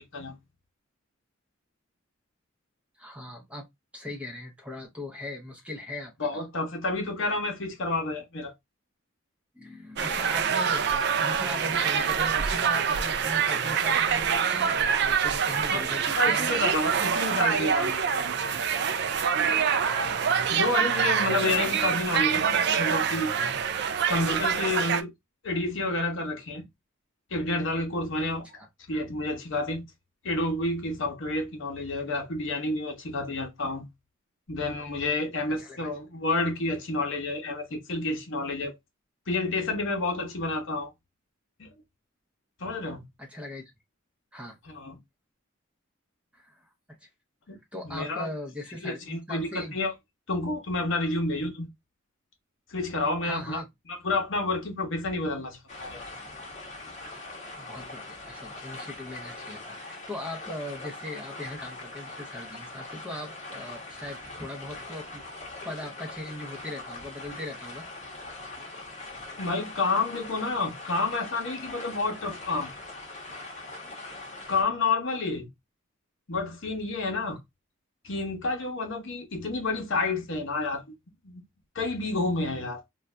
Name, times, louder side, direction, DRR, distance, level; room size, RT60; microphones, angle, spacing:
voice 1, 3.0-3.7 3.9-6.4 9.5-16.6 19.9-20.1 28.6-28.7 35.6-35.9 43.2-43.7 44.3-44.6 46.3-46.7 47.0-47.1 47.7-49.8 53.2-53.7 57.5-65.3 65.6-67.9, left 1 dB, 5° right, 0.7 m, -39 dB
voice 2, 6.2-8.5 15.7-15.8 16.2-18.3 20.5-23.3 24.1-25.1 25.4-26.6 27.3-28.5 28.9-29.8 30.2-33.9 34.5-38.8 39.3-40.9 41.6-41.7 42.6-43.1 44.7-45.0 47.5-47.6 47.8-48.3 48.8-49.9 50.3-51.7 52.7-53.6 54.0-56.0 69.4-72.7 74.5-75.5 76.3-77.4 78.0-80.8 81.2-81.4 81.7-82.8, left 2 dB, 65° left, 0.8 m, -29 dB
sound 1, 10.0-25.0, right 7 dB, 55° right, 0.4 m, -25 dB
sound 2, 55.7-74.6, left 2 dB, 35° left, 1.0 m, -42 dB
2.6 x 2.3 x 3.2 m
head